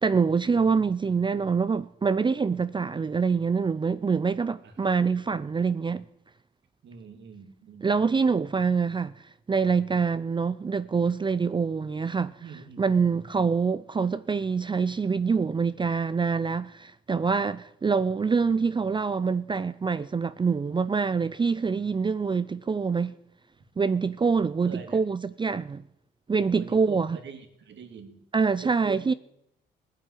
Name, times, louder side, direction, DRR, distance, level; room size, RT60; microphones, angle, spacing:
voice 1, 0.0-6.0 7.8-9.1 9.5-12.3 12.8-23.1 23.8-25.8 26.3-27.2 28.3-29.1, right 5 dB, 25° right, 0.5 m, -25 dB
voice 2, 4.6-5.0 6.8-7.9 12.4-13.5 24.6-25.0 26.5-28.2 28.6-29.2, right 5 dB, 65° right, 2.6 m, -44 dB
18.0 x 7.7 x 10.0 m
cardioid pair, 90°, 20 cm